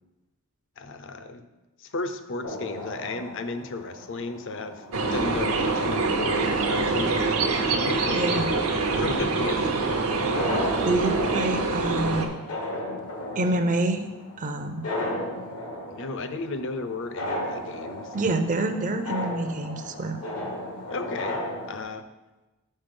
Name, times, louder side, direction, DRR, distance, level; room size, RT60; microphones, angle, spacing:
voice 1, 0.8-1.5 1.8-7.3 7.7-10.3 15.9-18.1 20.9-21.4 21.7-22.0, left 3 dB, 60° left, 8 dB, 0.5 m, -34 dB
sound 1, 2.4-21.8, left 1 dB, 90° left, 1.3 m, -36 dB
sound 2, 4.9-12.3, right 3 dB, 80° right, 0.8 m, -25 dB
voice 2, 8.1-8.4 10.8-12.4 13.4-14.1 14.4-14.8 18.1-20.2, right 2 dB, 35° right, 7 dB, 0.5 m, -27 dB
5.5 x 5.3 x 5.3 m, 1.1 s
head